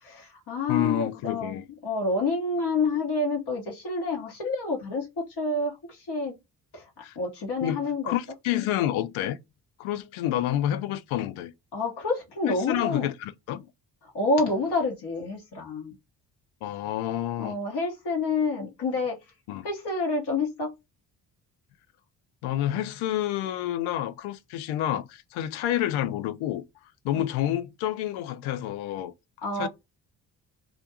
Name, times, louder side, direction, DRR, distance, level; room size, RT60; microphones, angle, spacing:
voice 1, 0.0-6.3 6.7-6.8 7.2-8.1 11.7-13.1 14.1-16.0 17.4-19.2 19.6-20.7 27.1-27.3 29.4-29.7, left 3 dB, 50° left, 1.0 m, -28 dB
voice 2, 0.7-1.6 7.0-7.2 7.6-7.8 8.0-9.4 9.8-11.5 12.7-13.7 16.6-17.6 19.5-19.7 22.4-26.7 27.0-29.1 29.6-29.7, left 12 dB, 70° left, 0.5 m, -29 dB
2.4 x 2.2 x 2.7 m
hypercardioid pair, 45°, 50 cm